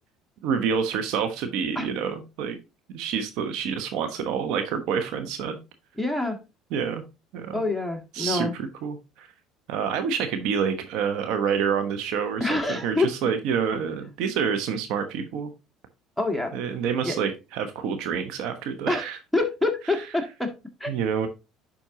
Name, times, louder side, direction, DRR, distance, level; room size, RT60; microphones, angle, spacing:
voice 1, 0.4-2.6 2.9-5.6 6.7-7.0 7.3-7.6 8.1-9.3 9.7-15.5 16.5-19.2 19.9-20.0 20.9-21.3, right 7 dB, 70° right, 1.0 m, -28 dB
voice 2, 6.0-6.4 7.5-8.5 12.4-13.1 16.2-16.6 17.0-17.2 18.9-19.0 19.3-20.6 20.8-20.9, left 2 dB, ahead, 1.8 m, -26 dB
10.5 x 4.4 x 2.8 m
hypercardioid pair, 70°, 0 cm